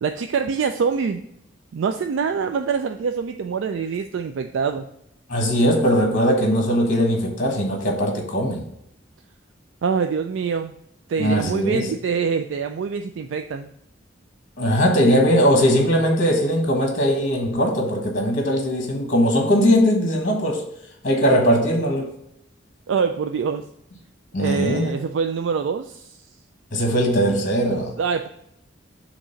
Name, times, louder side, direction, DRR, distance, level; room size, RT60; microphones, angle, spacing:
voice 1, 0.0-1.2 1.7-4.9 9.8-10.7 11.1-13.7 22.9-23.6 24.4-26.2 27.7-28.3, right 6 dB, 85° right, 7 dB, 0.3 m, -25 dB
voice 2, 5.3-8.7 11.2-11.9 14.6-20.6 21.0-22.1 24.3-24.9 26.7-27.9, equal, 45° left, 1 dB, 1.3 m, -20 dB
6.3 x 3.0 x 5.6 m, 0.76 s
head